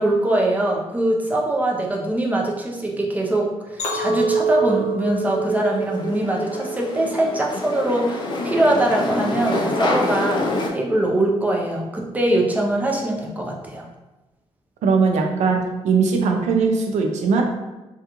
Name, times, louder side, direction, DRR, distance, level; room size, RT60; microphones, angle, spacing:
voice 1, 0.0-13.8, right 1 dB, 15° right, -1 dB, 0.6 m, -22 dB
Chink clink, 3.8-8.1 8.6-9.0, right 4 dB, 70° left, 0.8 m, -26 dB
sound 1, 5.2-10.7, left 2 dB, 40° left, 0.5 m, -26 dB
voice 2, 14.8-15.6 15.8-17.4, right 5 dB, 90° right, 3 dB, 0.5 m, -19 dB
3.5 x 2.3 x 2.9 m, 1.1 s
cardioid pair, 95°, 12 cm